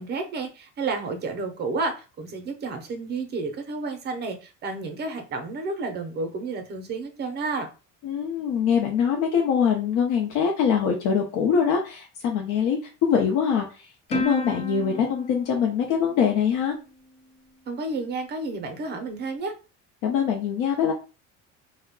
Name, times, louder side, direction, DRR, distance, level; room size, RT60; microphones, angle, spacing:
voice 1, 0.0-7.7 17.7-19.5, right 3 dB, 30° right, 5 dB, 0.5 m, -31 dB
voice 2, 8.0-16.7 20.0-20.9, left 7 dB, 70° left, 1 dB, 0.6 m, -23 dB
Plucked string instrument, 14.1-16.9, left 1 dB, 20° left, 0.4 m, -33 dB
2.2 x 2.1 x 3.5 m, 0.33 s
cardioid pair, 155°, 32 cm